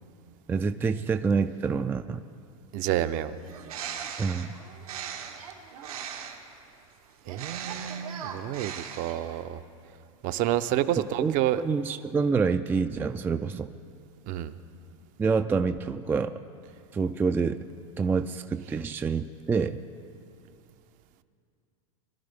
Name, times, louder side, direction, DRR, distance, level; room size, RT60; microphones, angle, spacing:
voice 1, 0.5-2.2 4.2-4.5 11.0-13.7 15.2-16.3 16.9-17.6 18.0-19.8, right 5 dB, 10° right, 9 dB, 0.3 m, -27 dB
voice 2, 2.7-3.3 7.3-9.6 10.2-11.6 14.3-14.5, right 12 dB, 45° right, 12 dB, 0.7 m, -29 dB
Bird, 3.4-6.5 7.2-9.4, right 8 dB, 85° right, 1.6 m, -39 dB
22.5 x 12.0 x 3.5 m, 2.5 s
hypercardioid pair, 110°, 18 cm